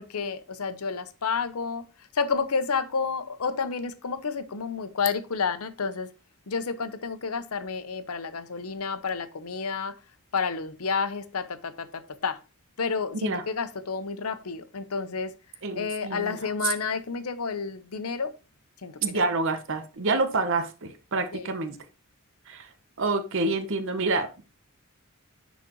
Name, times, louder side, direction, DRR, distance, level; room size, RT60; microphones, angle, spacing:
voice 1, 0.0-1.8 2.1-6.1 6.5-9.9 10.3-12.4 12.8-15.3 15.7-18.3 18.8-19.2 21.3-21.5, left 5 dB, 85° left, 0.8 m, -30 dB
voice 2, 15.6-16.4 19.0-21.8 22.5-22.7 23.0-24.3, right 3 dB, 60° right, 0.9 m, -27 dB
9.9 x 4.1 x 3.0 m
head